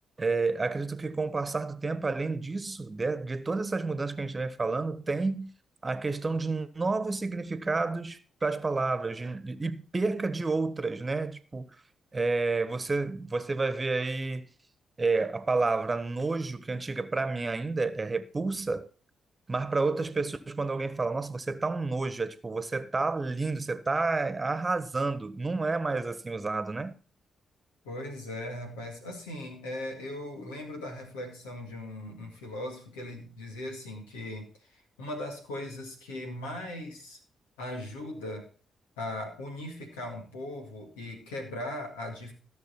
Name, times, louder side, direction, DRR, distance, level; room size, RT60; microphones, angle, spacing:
voice 1, 0.2-5.5 5.8-11.8 12.1-14.5 15.0-18.9 19.5-26.9, right 3 dB, 30° right, 1.2 m, -30 dB
voice 2, 27.8-34.5 34.7-37.2 37.6-38.5 39.0-42.3, left 1 dB, 90° left, 2.2 m, -39 dB
15.0 x 6.5 x 4.3 m
hypercardioid pair, 45°, 0 cm